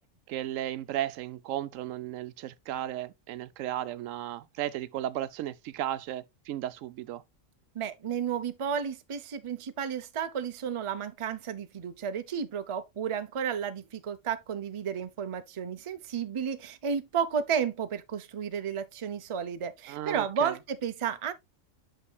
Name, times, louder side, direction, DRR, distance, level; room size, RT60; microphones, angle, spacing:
voice 1, 0.3-7.2 19.9-20.6, right 13 dB, 90° right, 1.0 m, -35 dB
voice 2, 7.7-21.3, right 7 dB, 35° right, 0.5 m, -32 dB
8.4 x 6.1 x 2.2 m
omnidirectional pair, 1.3 m